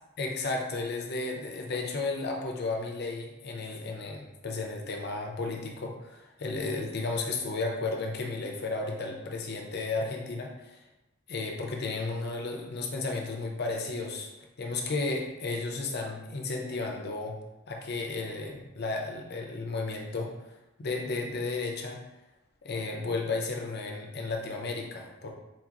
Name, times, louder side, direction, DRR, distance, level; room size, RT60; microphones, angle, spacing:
voice 1, 0.2-10.8 11.3-14.3 14.6-17.4 17.7-20.3 20.8-22.0 22.6-25.3, left 3 dB, 55° left, 1 dB, 0.6 m, -33 dB
4.3 x 2.9 x 2.4 m, 0.98 s
head